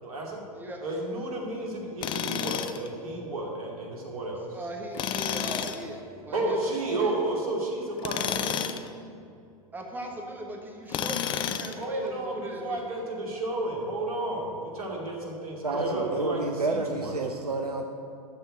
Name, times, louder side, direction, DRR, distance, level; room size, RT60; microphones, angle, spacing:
voice 1, 0.0-0.4 0.8-4.4 6.3-8.6 11.8-17.1, right 2 dB, 65° right, -1 dB, 2.6 m, -32 dB
Tools, 2.0-2.9 4.9-5.8 8.0-8.9 10.9-11.8, left 9 dB, 25° left, 0.5 m, -30 dB
voice 2, 4.5-6.6 6.8-7.1 9.7-12.8, right 1 dB, 10° right, 0 dB, 1.4 m, -38 dB
voice 3, 15.6-17.8, right 3 dB, 80° right, 4 dB, 0.7 m, -29 dB
13.0 x 4.5 x 7.9 m, 2.5 s
figure-of-eight pair, 95°, 20 cm